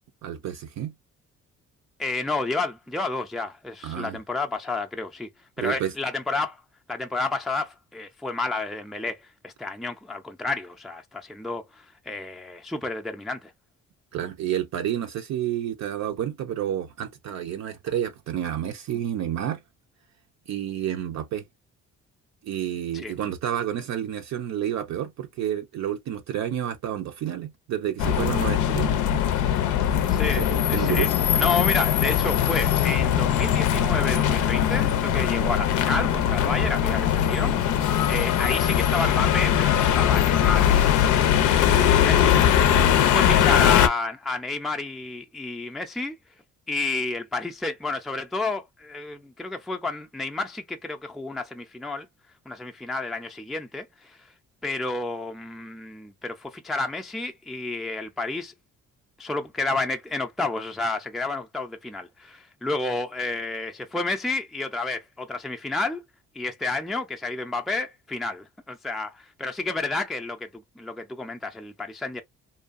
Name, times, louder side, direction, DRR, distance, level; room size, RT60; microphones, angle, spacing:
voice 1, 0.2-0.9 3.8-4.2 5.6-5.9 14.1-19.6 20.5-21.4 22.4-29.6 30.2-31.2, right 10 dB, 65° right, 0.5 m, -30 dB
voice 2, 2.0-5.3 5.6-6.6 6.9-13.5 22.9-23.1 30.1-30.4 30.7-42.7 43.0-46.2 46.7-52.1 52.5-54.2 54.6-58.5 59.2-66.0 66.4-72.2, left 3 dB, ahead, 0.4 m, -30 dB
sound 1, 28.0-43.9, left 9 dB, 90° left, 0.5 m, -21 dB
2.6 x 2.2 x 2.4 m
cardioid pair, 90°, 30 cm